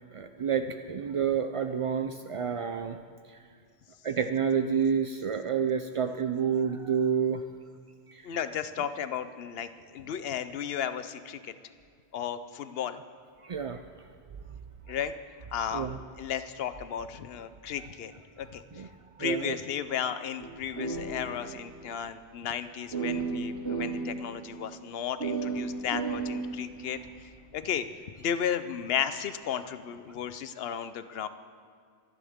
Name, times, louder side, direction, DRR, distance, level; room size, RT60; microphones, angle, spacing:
voice 1, 0.1-3.0 3.3-3.4 4.0-7.4 8.1-8.3 13.4-13.8 15.7-16.0 18.7-18.9 19.2-19.5, right 7 dB, 55° right, 7 dB, 0.3 m, -29 dB
voice 2, 8.2-11.5 12.1-13.0 14.9-15.1 15.5-15.9 16.2-18.1 18.4-18.9 19.2-27.9 28.2-31.3, left 8 dB, 65° left, 12 dB, 0.9 m, -34 dB
sound 1, 20.4-21.7 22.0-22.1 22.9-24.2 25.2-27.2, right 4 dB, 75° right, 2.6 m, -33 dB
26.0 x 10.5 x 3.6 m, 2.1 s
omnidirectional pair, 1.1 m